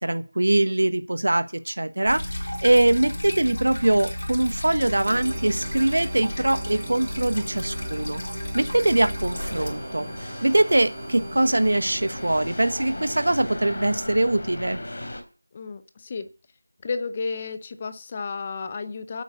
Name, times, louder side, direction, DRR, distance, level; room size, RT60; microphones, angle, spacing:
voice 1, 0.0-8.2 8.5-14.8, right 1 dB, 70° right, 11 dB, 1.2 m, -22 dB
sound 1, 2.1-9.7, left 1 dB, 70° left, 4.9 m, -33 dB
sound 2, 5.1-14.4, right 2 dB, 20° right, 1.5 m, -41 dB
sound 3, 9.3-15.2, left 1 dB, 50° left, 3.1 m, -36 dB
voice 2, 15.5-16.3 16.8-19.2, left 4 dB, 15° left, 11 dB, 0.6 m, -32 dB
8.5 x 8.5 x 8.2 m, 0.37 s
figure-of-eight pair, 175°, 0 cm